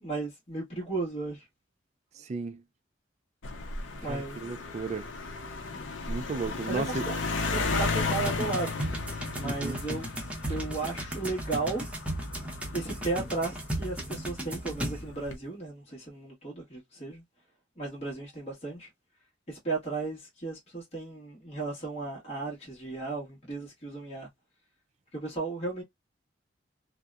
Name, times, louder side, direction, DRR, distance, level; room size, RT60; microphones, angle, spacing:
voice 1, 0.0-1.4 4.0-4.4 5.7-5.9 6.7-7.2 7.5-8.8 9.3-10.1 10.5-11.8 12.7-17.2 17.8-18.9 19.5-24.3 25.1-25.8, right 3 dB, 35° left, 1.2 m, -35 dB
voice 2, 2.2-2.6 4.1-5.1 6.1-7.1 9.4-9.8 10.5-10.7, right 4 dB, 35° right, 0.3 m, -35 dB
sound 1, 3.4-14.2 14.9-15.4, left 3 dB, 85° left, 0.6 m, -34 dB
sound 2, 8.0-15.3, right 1 dB, 5° right, 0.7 m, -36 dB
2.7 x 2.1 x 2.2 m
head